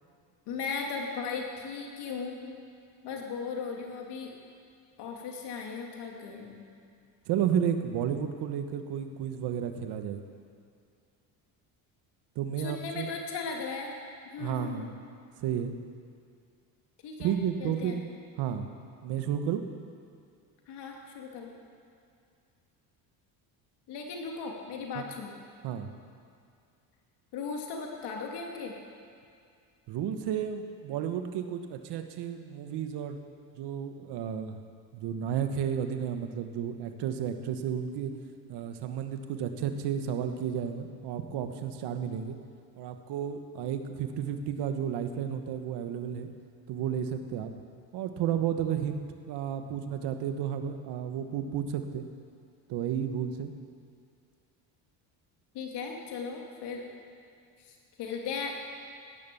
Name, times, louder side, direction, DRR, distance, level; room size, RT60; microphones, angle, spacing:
voice 1, 0.5-2.6 3.0-4.3 5.0-6.6 12.6-13.9 14.3-14.9 17.0-17.3 17.6-18.0 20.7-21.5 23.9-25.3 27.3-28.7 55.5-56.8 57.7-58.5, left 5 dB, 70° left, 0 dB, 3.1 m, -37 dB
voice 2, 7.3-10.2 12.3-13.1 14.4-14.9 15.4-15.7 17.2-18.1 18.4-18.7 19.0-19.6 24.9-25.0 25.6-25.9 29.9-33.2 33.6-34.6 34.9-38.1 38.5-42.4 42.8-46.3 46.7-47.5 47.9-52.0 52.7-53.5, right 8 dB, 70° right, 7 dB, 1.5 m, -32 dB
17.0 x 10.5 x 7.1 m, 2.3 s
cardioid pair, 100°, 42 cm